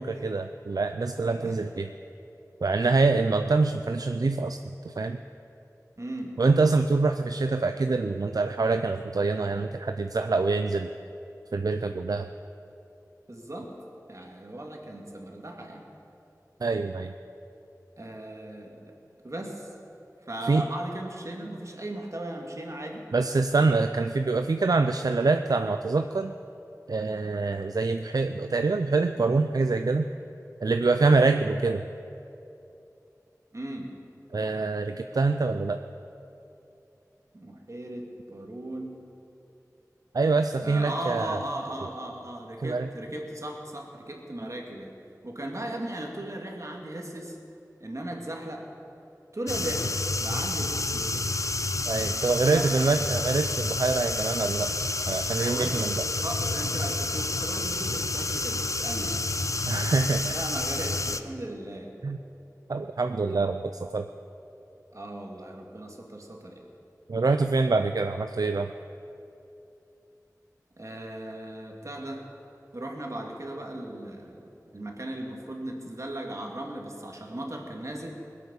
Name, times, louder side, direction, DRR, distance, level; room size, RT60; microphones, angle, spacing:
voice 1, 0.0-1.9 2.6-5.2 6.4-10.9 11.5-12.3 16.6-17.1 20.5-20.6 23.1-26.3 26.9-30.1 30.6-31.8 34.3-35.8 40.1-41.4 42.6-42.9 51.9-54.7 55.1-56.0 59.7-60.3 62.0-62.2 62.7-64.0 67.1-68.7, right 3 dB, 75° right, 8 dB, 0.4 m, -25 dB
voice 2, 1.2-1.7 2.8-2.9 6.0-6.4 13.3-13.8 14.1-15.9 18.0-18.9 19.2-19.7 20.2-23.1 33.5-33.9 37.3-39.1 40.6-44.9 45.2-47.4 47.8-48.7 49.3-51.3 52.1-53.1 55.3-55.9 56.2-59.3 60.3-62.0 64.9-66.6 70.8-72.2 72.7-74.5 74.7-78.2, right 1 dB, 55° right, 1 dB, 2.2 m, -37 dB
sound 1, 49.5-61.2, left 2 dB, 55° left, 0.6 m, -29 dB
20.5 x 8.3 x 7.1 m, 2.8 s
wide cardioid pair, 45°, 6 cm